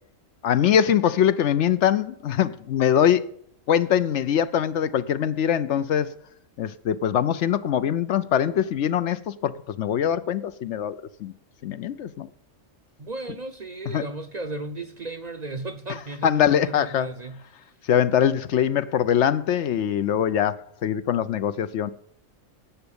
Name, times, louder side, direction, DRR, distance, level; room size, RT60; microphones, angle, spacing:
voice 1, 0.4-3.3 3.7-6.1 6.6-11.3 11.6-12.3 13.9-14.0 16.2-17.1 17.9-21.9, left 9 dB, 65° left, 0.9 m, -23 dB
voice 2, 13.0-17.6, right 2 dB, 45° right, 0.6 m, -35 dB
11.5 x 7.9 x 7.0 m
omnidirectional pair, 1.3 m